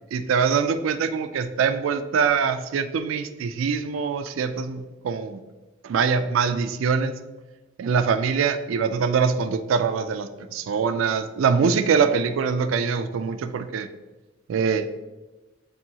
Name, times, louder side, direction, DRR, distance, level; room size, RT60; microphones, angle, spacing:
voice 1, 0.1-5.4 5.8-7.1 7.8-13.9 14.5-15.0, right 6 dB, 85° right, 9 dB, 0.3 m, -23 dB
7.3 x 2.6 x 2.8 m, 1.2 s
head